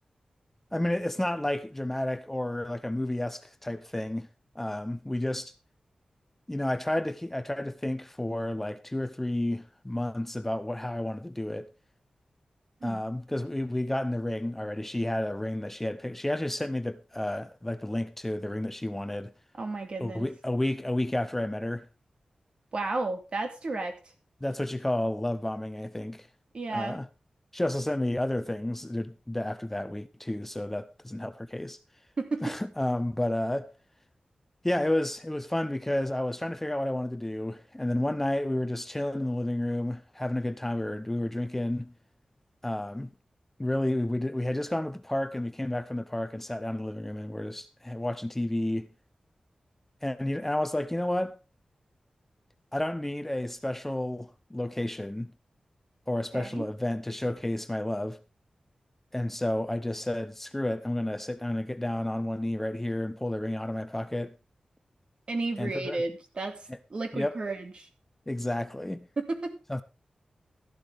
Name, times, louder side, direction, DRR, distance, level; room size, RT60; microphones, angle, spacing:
voice 1, 0.7-4.3 4.5-5.5 6.5-11.7 12.8-19.3 20.0-21.9 24.4-26.3 26.7-27.1 27.5-31.8 32.4-33.7 34.6-41.9 42.6-43.1 43.6-48.9 50.0-51.4 52.7-55.3 56.1-58.2 59.1-64.3 65.6-66.0 67.1-67.4 68.3-69.1 69.7-69.8, left 1 dB, 10° left, 0.6 m, -31 dB
voice 2, 19.6-20.3 22.7-24.0 26.5-27.0 32.2-32.6 56.3-56.7 65.3-67.9 69.2-69.5, right 3 dB, 50° right, 2.2 m, -33 dB
13.5 x 12.0 x 3.5 m
wide cardioid pair, 105°, 2 cm